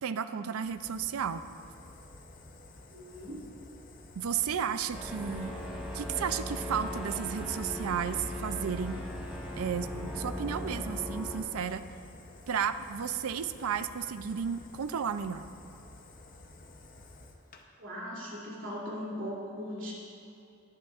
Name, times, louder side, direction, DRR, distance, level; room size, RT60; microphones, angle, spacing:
voice 1, 0.0-1.5 4.2-5.6 5.9-9.0 9.6-11.8 12.5-15.5, right 7 dB, 85° right, 11 dB, 0.4 m, -33 dB
Fire, 0.6-17.6, left 2 dB, 40° left, 0.7 m, -52 dB
voice 2, 2.9-3.4 17.8-19.9, equal, 65° right, -6 dB, 2.8 m, -39 dB
sound 1, 4.9-11.4, left 1 dB, 5° right, 1.6 m, -38 dB
20.0 x 8.6 x 2.5 m, 2.6 s
head